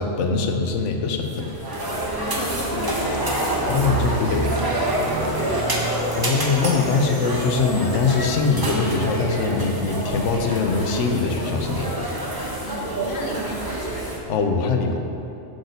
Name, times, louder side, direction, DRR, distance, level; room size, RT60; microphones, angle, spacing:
voice 1, 0.0-1.5 3.6-4.6 6.2-12.1 14.3-15.0, left 4 dB, 90° left, 4 dB, 1.0 m, -22 dB
sound 1, 1.2-14.2, right 1 dB, 25° right, 0.6 m, -27 dB
sound 2, 1.6-7.2, right 2 dB, 85° right, 1.1 m, -37 dB
sound 3, 2.3-4.5 4.7-8.3, left 2 dB, 65° left, 1.3 m, -45 dB
voice 2, 2.3-3.2 5.2-5.8 12.6-13.8, left 1 dB, 50° left, 0 dB, 0.9 m, -34 dB
7.8 x 6.4 x 2.7 m, 2.8 s
omnidirectional pair, 1.2 m